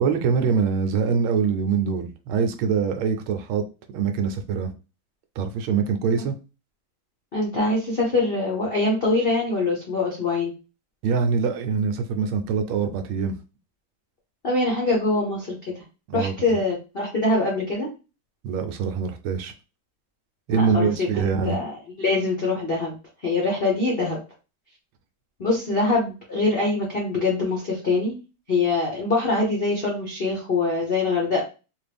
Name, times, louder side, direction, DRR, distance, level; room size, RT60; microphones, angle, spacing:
voice 1, 0.0-3.6 3.9-4.7 5.4-6.3 11.0-13.4 16.1-16.6 18.4-19.5 20.5-21.6, right 6 dB, 80° right, 6 dB, 1.4 m, -24 dB
voice 2, 7.3-10.5 14.4-15.7 16.1-17.9 20.5-22.9 23.2-24.2 25.4-28.1 28.5-31.4, left 3 dB, 65° left, -2 dB, 0.5 m, -24 dB
3.6 x 2.5 x 3.4 m, 0.31 s
omnidirectional pair, 2.4 m